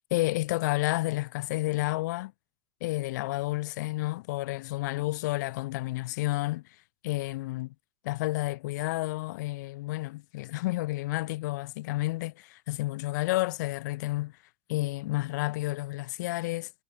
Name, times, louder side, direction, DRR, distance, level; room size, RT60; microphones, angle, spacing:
voice 1, 0.1-2.3 2.8-6.6 7.0-7.7 8.0-14.3 14.7-16.7, left 19 dB, 75° left, 0.7 m, -30 dB
supercardioid pair, 125°, 10 cm